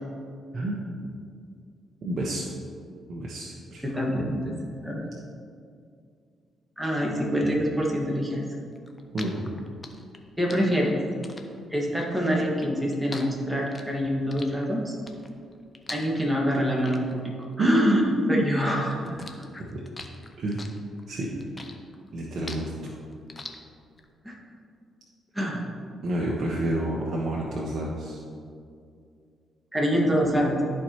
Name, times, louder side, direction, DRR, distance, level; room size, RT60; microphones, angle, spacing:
voice 1, 0.5-1.0 2.0-2.5 3.1-3.8 9.1-9.5 17.6-18.4 19.6-19.8 20.4-20.6 21.1-21.3 22.1-22.9 26.0-28.2, right 1 dB, 55° right, -4 dB, 1.1 m, -28 dB
voice 2, 3.8-4.6 4.8-5.1 6.8-8.5 10.4-11.0 11.7-15.0 15.9-18.0 18.3-19.0 24.2-24.3 25.3-25.6 29.7-30.6, equal, 5° right, -2 dB, 1.7 m, -25 dB
sound 1, 8.8-18.6 18.9-24.1, left 3 dB, 30° left, 0.8 m, -43 dB
13.5 x 4.6 x 3.0 m, 2.3 s
cardioid pair, 80°, 0 cm